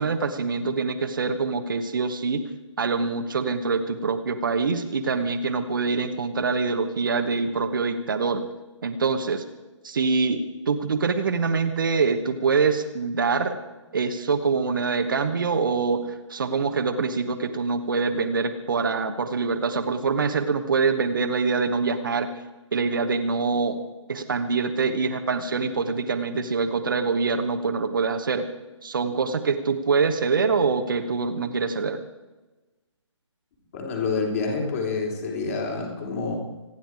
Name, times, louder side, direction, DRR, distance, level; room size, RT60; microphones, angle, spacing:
voice 1, 0.0-2.4 2.8-8.4 8.8-9.4 9.8-13.6 13.9-22.3 22.7-23.8 24.1-28.5 28.8-32.0, right 4 dB, 40° right, 6 dB, 1.2 m, -25 dB
voice 2, 33.7-36.4, left 4 dB, 30° left, 0 dB, 3.6 m, -27 dB
26.0 x 10.5 x 4.8 m, 1.1 s
figure-of-eight pair, 145°, 16 cm